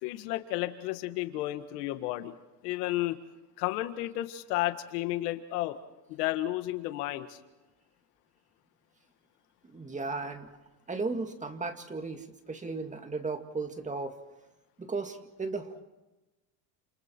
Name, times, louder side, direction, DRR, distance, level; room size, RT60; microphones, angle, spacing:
voice 1, 0.0-2.3 2.6-3.2 3.6-5.8 6.1-7.4, left 16 dB, 85° left, 9 dB, 1.8 m, -32 dB
voice 2, 9.6-10.5 10.9-14.2 14.8-15.8, right 3 dB, 15° right, 7 dB, 2.0 m, -35 dB
29.5 x 28.0 x 4.5 m, 1.1 s
supercardioid pair, 125°, 46 cm